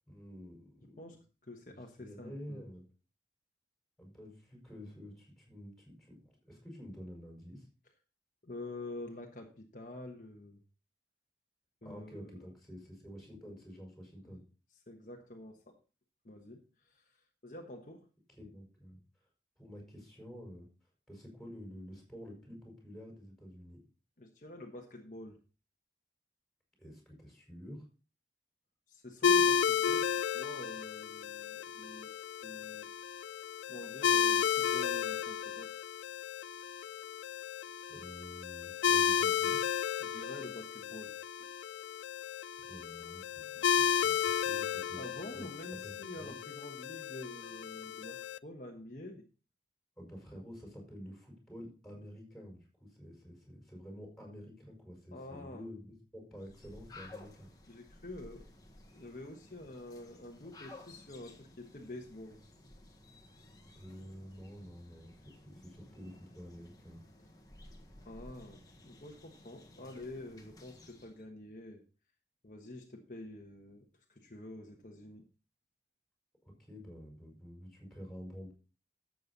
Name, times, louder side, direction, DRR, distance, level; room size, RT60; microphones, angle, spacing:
voice 1, 0.1-1.2 1.7-2.8 4.0-7.7 11.8-14.4 18.4-19.0 19.6-20.7 21.1-23.8 26.8-27.8 37.9-39.6 42.6-45.0 45.3-46.3 50.0-57.5 63.7-67.0 76.6-78.5, equal, ahead, 0 dB, 5.1 m, -49 dB
voice 2, 1.4-2.6 8.4-10.6 11.8-12.4 14.2-14.3 14.9-15.8 16.2-18.1 24.2-25.4 28.9-32.9 33.7-35.8 40.0-41.1 41.4-41.5 44.9-49.2 55.1-55.7 57.7-58.5 58.9-62.4 68.1-71.8 72.4-75.2, left 1 dB, 45° left, 1 dB, 1.3 m, -47 dB
sound 1, 29.2-48.4, left 7 dB, 85° left, 0.4 m, -33 dB
sound 2, 56.3-71.2, left 2 dB, 20° left, 1.6 m, -56 dB
12.5 x 7.7 x 4.0 m, 0.35 s
head